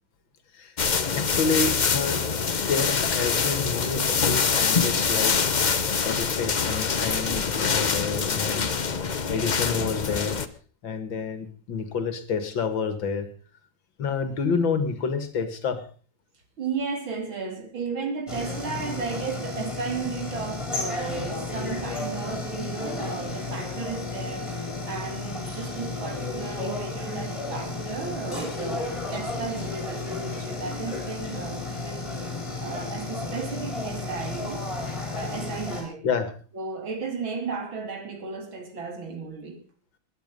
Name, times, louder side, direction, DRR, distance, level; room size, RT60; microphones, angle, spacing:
sound 1, 0.8-10.5, left 5 dB, 45° left, 0.5 m, -25 dB
voice 1, 1.1-5.4 6.0-8.7 9.3-10.4 10.8-13.3 14.0-15.8 36.0-36.3, left 5 dB, 75° left, 2.6 m, -29 dB
voice 2, 16.6-32.1 32.6-34.7 35.1-36.0 36.5-39.6, right 5 dB, 85° right, 3.6 m, -34 dB
sound 2, 18.3-35.8, left 3 dB, 15° left, 6.0 m, -33 dB
20.0 x 10.5 x 5.4 m
omnidirectional pair, 2.1 m